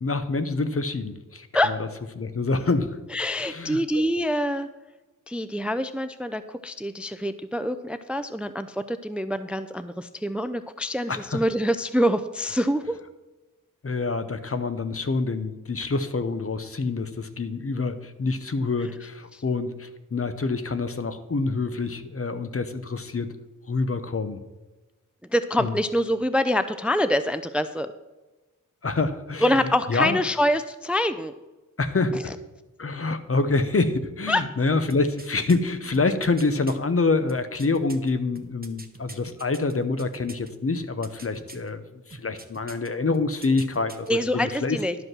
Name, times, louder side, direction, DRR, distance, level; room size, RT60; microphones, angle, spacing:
voice 1, 0.0-1.8 2.2-3.0 3.4-4.0 11.1-11.4 13.8-23.3 23.7-24.4 25.6-25.7 28.8-29.5 29.9-30.2 31.8-32.3 32.8-41.8 42.1-44.8, left 3 dB, 45° left, 10 dB, 0.8 m, -26 dB
voice 2, 3.1-4.7 5.3-13.0 19.3-19.4 25.3-27.9 29.4-31.3 34.3-34.4 44.1-45.0, equal, 5° right, 11 dB, 0.4 m, -25 dB
sound 1, 34.9-36.8 37.3-40.5 40.8-41.7 42.1-42.9 43.1-44.1 44.4-44.5, right 3 dB, 30° right, 1.0 m, -44 dB
11.5 x 5.3 x 6.1 m, 1.1 s
cardioid pair, 50°, 33 cm